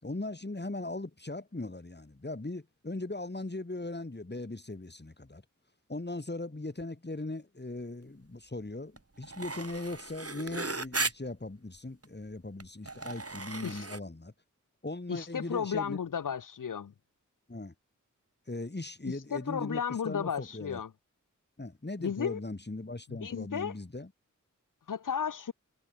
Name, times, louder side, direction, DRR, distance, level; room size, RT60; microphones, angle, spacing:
voice 1, 0.0-5.4 5.9-14.3 14.8-16.0 17.5-17.7 18.5-20.8 21.6-24.1, left 2 dB, 35° left, 4.0 m, -39 dB
sound 1, 9.0-9.1 9.2-11.1 12.0-12.1 12.6-14.0, right 3 dB, 45° right, 3.9 m, -36 dB
voice 2, 15.1-16.9 19.1-20.9 22.0-22.4 23.1-23.7 24.9-25.5, left 7 dB, 75° left, 0.9 m, -34 dB
wide cardioid pair, 50°, 32 cm